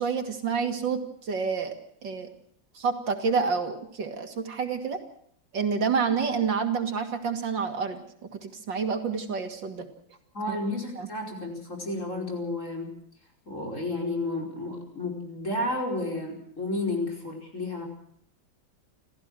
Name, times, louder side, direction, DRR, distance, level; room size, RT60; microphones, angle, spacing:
voice 1, 0.0-1.8 2.0-2.3 2.7-5.0 5.5-8.0 8.3-9.9 10.5-10.6 11.0-11.1, right 5 dB, 85° right, 6 dB, 3.2 m, -28 dB
voice 2, 10.3-12.9 13.5-17.9, left 2 dB, 40° left, 1 dB, 5.4 m, -32 dB
28.5 x 15.0 x 6.2 m, 0.67 s
omnidirectional pair, 1.9 m